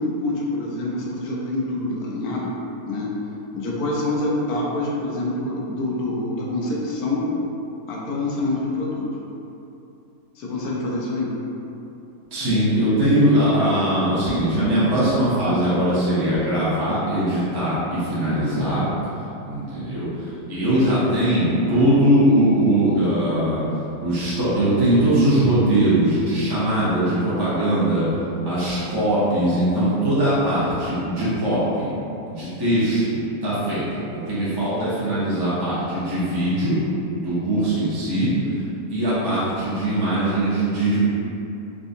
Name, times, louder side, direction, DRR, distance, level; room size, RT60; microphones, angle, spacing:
voice 1, 0.0-2.6 2.9-3.1 3.5-7.3 7.9-9.1 10.4-11.4, left 2 dB, 75° left, -4 dB, 1.1 m, -26 dB
voice 2, 12.3-18.9 19.5-23.6 24.0-28.1 28.4-31.9 32.3-33.8 34.1-36.8 37.1-38.6 38.9-41.0, right 1 dB, 30° right, -11 dB, 0.4 m, -21 dB
3.6 x 2.6 x 2.5 m, 2.9 s
omnidirectional pair, 1.6 m